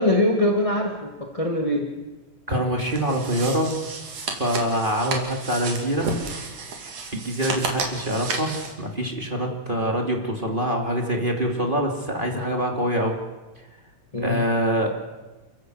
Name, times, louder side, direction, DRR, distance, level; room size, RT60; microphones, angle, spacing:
voice 1, 0.0-1.9 14.1-14.4, left 1 dB, 15° left, 1 dB, 1.6 m, -22 dB
voice 2, 2.5-3.8 4.3-6.2 7.1-13.2 14.2-14.9, equal, 15° right, 1 dB, 2.6 m, -25 dB
sound 1, 2.9-8.7, right 4 dB, 75° right, 4.2 m, -32 dB
28.5 x 15.0 x 7.9 m, 1.2 s
omnidirectional pair, 3.7 m